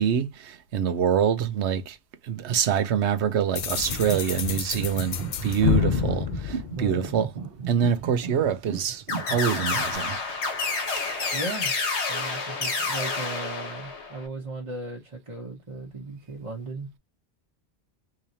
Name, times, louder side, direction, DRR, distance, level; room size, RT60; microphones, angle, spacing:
voice 1, 0.0-2.0 2.2-7.3 7.7-9.0 9.3-10.2 11.0-11.1, right 8 dB, 90° right, 1.0 m, -25 dB
sound 1, 3.5-7.4, left 9 dB, 55° left, 0.6 m, -28 dB
sound 2, 3.5-10.0, right 6 dB, 60° right, 1.1 m, -37 dB
voice 2, 6.7-7.2 11.3-11.7 12.1-17.0, right 3 dB, 30° right, 1.0 m, -36 dB
sound 3, 9.1-14.2, left 4 dB, 80° left, 1.3 m, -29 dB
3.8 x 3.1 x 2.7 m
omnidirectional pair, 1.1 m